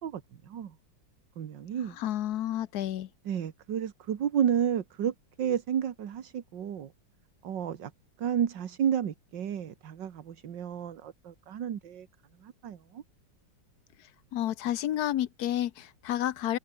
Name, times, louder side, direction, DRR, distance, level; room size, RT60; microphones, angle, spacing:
voice 1, 0.0-0.7 1.4-2.0 3.3-6.9 7.4-7.9 8.2-12.1 12.4-13.0, right 9 dB, 70° right, 2.0 m, -31 dB
voice 2, 1.9-3.1 14.3-16.6, left 12 dB, 65° left, 1.1 m, -30 dB
omnidirectional pair, 2.1 m